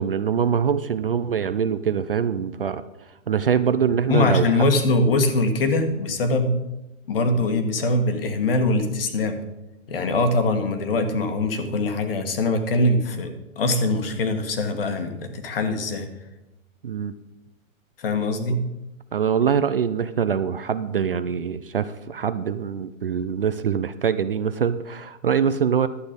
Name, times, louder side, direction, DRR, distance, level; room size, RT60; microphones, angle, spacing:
voice 1, 0.0-2.8 3.3-4.5 16.8-17.1 19.1-25.9, right 7 dB, 45° right, 13 dB, 0.4 m, -23 dB
voice 2, 4.1-6.6 7.1-9.4 9.9-16.1 18.0-18.6, left 2 dB, 45° left, 8 dB, 1.4 m, -22 dB
11.5 x 8.1 x 5.1 m, 1.0 s
hypercardioid pair, 175°, 40 cm